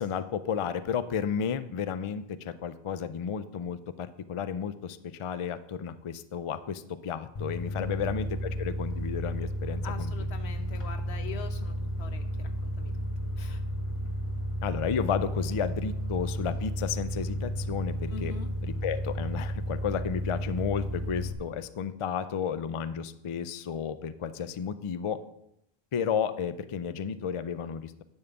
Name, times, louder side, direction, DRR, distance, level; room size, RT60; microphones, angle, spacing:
voice 1, 0.0-10.1 14.6-18.3 18.6-25.2 25.9-28.0, left 7 dB, 55° left, 13 dB, 0.3 m, -32 dB
sound 1, 7.4-21.3, equal, 30° left, 0.9 m, -33 dB
voice 2, 7.8-8.1 9.8-12.9 13.4-13.6 18.1-18.5, left 6 dB, 90° left, 8 dB, 1.1 m, -43 dB
10.5 x 3.7 x 6.8 m, 0.79 s
omnidirectional pair, 1.1 m